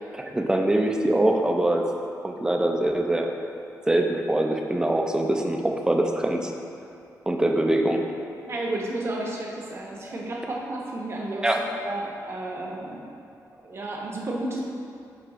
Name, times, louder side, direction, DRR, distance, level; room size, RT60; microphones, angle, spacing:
voice 1, 0.0-1.8 2.2-3.3 3.9-6.5 7.3-8.0 11.4-11.7, right 1 dB, 10° right, 2 dB, 0.5 m, -23 dB
voice 2, 8.4-11.5 11.8-13.1 13.6-14.6, right 2 dB, 40° right, -2 dB, 1.0 m, -32 dB
7.6 x 3.3 x 5.0 m, 2.5 s
wide cardioid pair, 140°, 7 cm